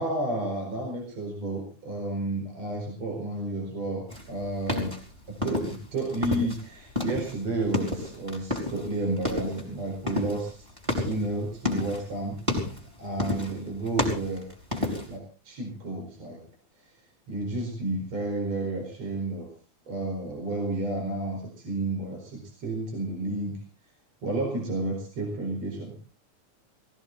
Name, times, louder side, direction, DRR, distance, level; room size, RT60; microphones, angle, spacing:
voice 1, 0.0-5.0 5.3-10.7 10.9-12.4 13.0-14.5 15.1-16.4 17.3-19.5 19.9-23.6 24.2-25.9, right 2 dB, 60° right, 2 dB, 5.8 m, -31 dB
sound 1, 4.1-6.6 6.9-8.9 9.2-9.6 10.1-12.1 12.4-12.9 13.2-13.6 13.9-15.2, left 2 dB, 10° right, 4.7 m, -30 dB
19.0 x 17.5 x 4.0 m, 0.35 s
omnidirectional pair, 3.4 m